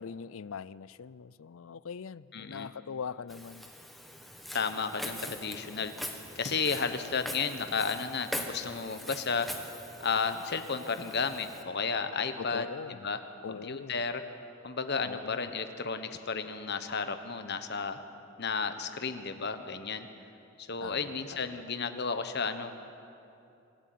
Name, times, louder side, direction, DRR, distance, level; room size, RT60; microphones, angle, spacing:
voice 1, 0.0-3.7 12.4-13.0 13.4-14.0 15.0-15.4 20.8-21.6, left 6 dB, 75° left, 20 dB, 0.5 m, -42 dB
voice 2, 2.3-2.7 4.5-5.9 6.3-9.5 10.0-12.7 13.0-13.2 13.5-14.2 14.6-18.0 18.4-20.1 20.6-22.7, left 5 dB, 50° left, 9 dB, 1.2 m, -33 dB
Walk footsteps, 3.3-11.6, equal, ahead, 1.4 m, -42 dB
26.0 x 13.0 x 9.4 m, 2.7 s
head